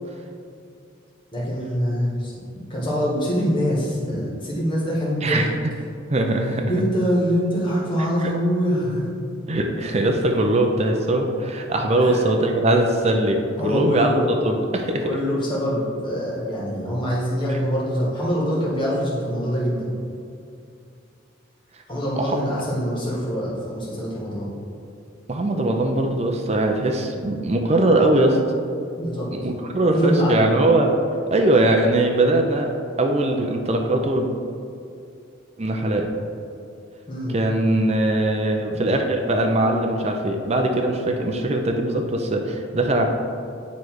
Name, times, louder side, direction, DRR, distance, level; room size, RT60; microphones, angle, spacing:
voice 1, 1.3-2.3 2.7-5.5 6.7-9.1 12.0-12.2 13.6-14.3 15.0-19.9 21.9-24.5 28.9-29.3 29.9-30.5 37.1-37.4, equal, 25° left, -6 dB, 1.7 m, -24 dB
voice 2, 6.1-6.8 8.2-8.3 9.5-14.1 14.4-15.1 17.5-17.6 22.2-22.4 25.3-28.4 29.3-30.9 31.3-34.3 35.6-36.1 37.3-43.1, right 1 dB, 30° right, 3 dB, 0.5 m, -21 dB
9.3 x 3.2 x 4.6 m, 2.4 s
head